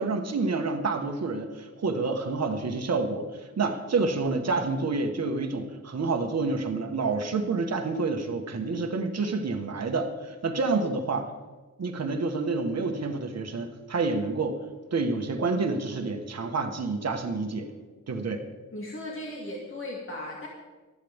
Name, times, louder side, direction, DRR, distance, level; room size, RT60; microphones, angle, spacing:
voice 1, 0.0-3.2 3.6-11.3 11.8-14.6 14.9-17.7 18.1-18.4, right 3 dB, 55° right, 5 dB, 1.6 m, -28 dB
voice 2, 18.7-20.5, left 1 dB, 40° left, -3 dB, 2.5 m, -37 dB
20.0 x 14.0 x 3.7 m, 1.2 s
wide cardioid pair, 165°, 31 cm